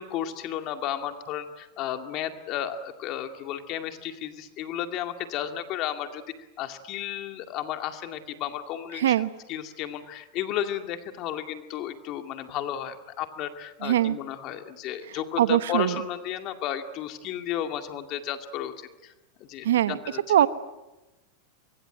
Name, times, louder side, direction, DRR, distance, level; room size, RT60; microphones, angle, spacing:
voice 1, 0.0-19.1 19.4-20.2, left 10 dB, 45° left, 7 dB, 2.2 m, -33 dB
voice 2, 9.0-9.3 13.8-14.2 15.4-16.0 19.6-20.0 20.3-20.5, right 12 dB, 85° right, 14 dB, 1.1 m, -22 dB
23.5 x 23.5 x 9.0 m, 1.0 s
hypercardioid pair, 120°, 0 cm